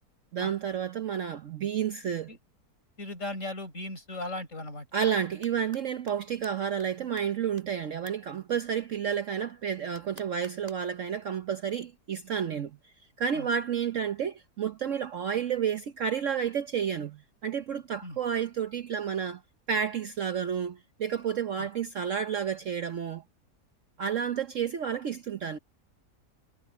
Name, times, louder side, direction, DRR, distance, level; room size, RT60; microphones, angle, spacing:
voice 1, 0.3-2.3 4.9-12.8 13.2-19.4 19.7-23.2 24.0-25.6, right 8 dB, 55° right, 1.0 m, -31 dB
voice 2, 3.0-4.9 13.3-13.5 18.0-18.2 21.6-21.7, left 2 dB, 45° left, 7.0 m, -37 dB
sound 1, 5.4-5.8 6.1-6.2 6.4-6.5 6.8-6.9 7.2-7.3 7.6-7.7 8.1-8.2 9.9-10.9, right 1 dB, 25° right, 4.5 m, -49 dB
omnidirectional pair, 1.8 m